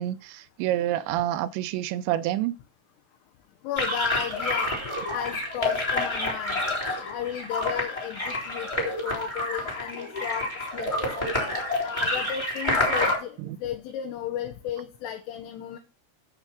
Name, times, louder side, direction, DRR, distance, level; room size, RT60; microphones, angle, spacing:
voice 1, 0.0-2.5 13.4-13.6, right 13 dB, 85° right, 2.6 m, -28 dB
voice 2, 3.6-4.7 5.1-6.6 6.9-10.5 10.7-11.2 11.8-13.4 13.6-15.8, left 10 dB, 80° left, 3.4 m, -34 dB
sound 1, 3.8-13.2, left 1 dB, 10° left, 2.6 m, -28 dB
8.2 x 6.5 x 6.0 m
omnidirectional pair, 5.8 m